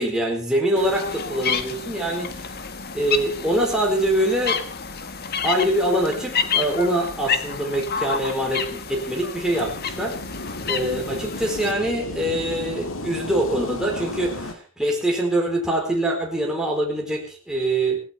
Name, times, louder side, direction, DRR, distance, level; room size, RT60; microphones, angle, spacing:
voice 1, 0.0-2.6 2.9-4.6 5.4-18.0, right 1 dB, 5° right, -2 dB, 4.3 m, -24 dB
sound 1, 0.8-11.7, left 6 dB, 45° left, 1.6 m, -29 dB
sound 2, 9.5-14.5, left 2 dB, 70° left, 2.3 m, -34 dB
17.5 x 17.0 x 4.4 m, 0.35 s
head